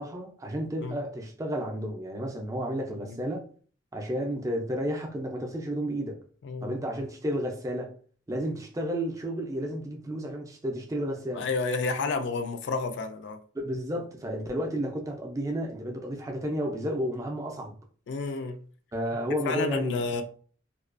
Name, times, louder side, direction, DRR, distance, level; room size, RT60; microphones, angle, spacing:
voice 1, 0.0-3.4 3.9-6.2 6.6-7.9 8.3-11.5 13.5-17.8 18.9-20.1, equal, 15° right, 0.4 m, -32 dB
voice 2, 6.4-6.8 11.3-13.4 18.1-18.6 19.5-20.2, left 4 dB, 70° left, 0.3 m, -30 dB
2.4 x 2.2 x 2.4 m
head